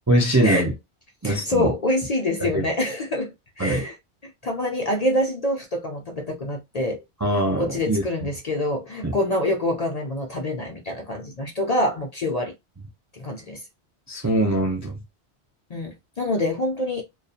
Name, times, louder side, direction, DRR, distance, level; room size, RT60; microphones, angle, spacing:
voice 1, 0.1-0.7 1.2-1.7 2.4-2.7 3.6-3.8 7.2-8.3 9.0-9.2 14.1-15.0, right 1 dB, 25° right, 0.4 m, -22 dB
voice 2, 1.2-4.0 4.2-7.0 7.6-12.5 13.1-13.6 15.7-17.0, left 1 dB, 50° left, 0.5 m, -26 dB
2.6 x 2.3 x 2.4 m
omnidirectional pair, 1.1 m